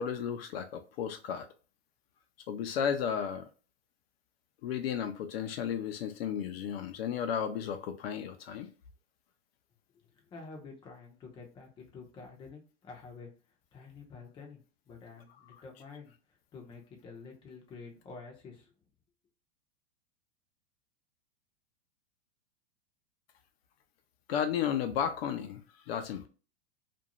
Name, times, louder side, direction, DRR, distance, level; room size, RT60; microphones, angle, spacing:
voice 1, 0.0-1.5 2.5-3.5 4.6-8.7 15.5-15.6 24.3-26.3, left 8 dB, 60° left, 0.5 m, -33 dB
voice 2, 10.1-13.3 13.7-14.6 14.9-16.1 16.5-18.7, left 4 dB, 15° left, 0.5 m, -49 dB
2.6 x 2.3 x 2.8 m
supercardioid pair, 145°, 35 cm